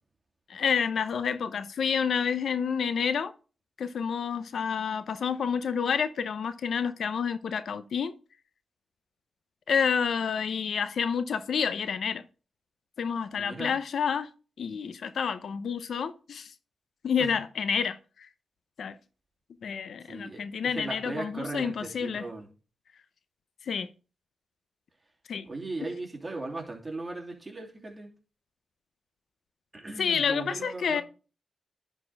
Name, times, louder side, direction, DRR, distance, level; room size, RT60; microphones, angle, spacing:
voice 1, 0.5-3.3 3.8-8.1 9.7-12.2 13.0-14.3 14.6-16.5 17.0-18.0 18.8-19.0 19.6-22.2 23.7-23.9 25.3-25.5 30.0-31.0, left 6 dB, 75° left, 0.6 m, -29 dB
voice 2, 13.4-13.7 17.2-17.3 20.0-22.5 25.4-28.1 29.7-31.0, right 2 dB, 25° right, 2.9 m, -38 dB
10.5 x 4.2 x 4.6 m
cardioid pair, 60°, 0 cm